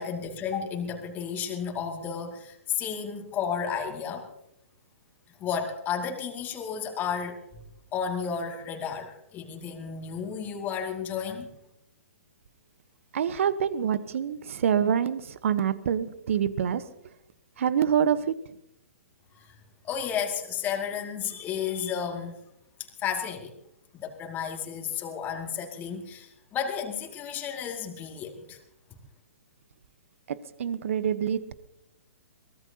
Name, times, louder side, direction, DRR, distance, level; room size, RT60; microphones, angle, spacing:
voice 1, 0.0-4.3 5.4-7.4 7.9-11.5 19.3-19.6 19.8-22.4 22.8-23.5 23.9-28.6, left 7 dB, 20° left, 2 dB, 2.3 m, -32 dB
voice 2, 13.1-16.8 17.6-18.4 30.3-31.5, right 8 dB, 60° right, 15 dB, 1.1 m, -26 dB
23.0 x 19.0 x 2.9 m, 0.80 s
figure-of-eight pair, 125°, 8 cm